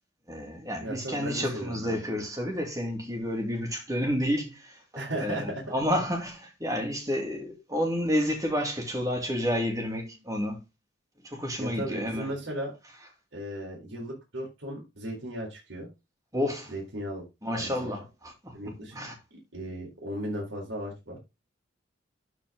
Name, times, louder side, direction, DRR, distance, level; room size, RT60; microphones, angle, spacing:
voice 1, 0.3-10.6 11.2-12.3 16.3-16.7 17.4-18.6 18.9-19.1, equal, 15° right, 2.7 m, -30 dB
voice 2, 0.8-2.0 5.0-5.6 11.6-12.7 13.3-15.9 16.7-17.3 17.5-17.9 18.5-19.0 19.3-21.2, right 1 dB, 85° right, 4.0 m, -36 dB
12.5 x 5.0 x 3.8 m
head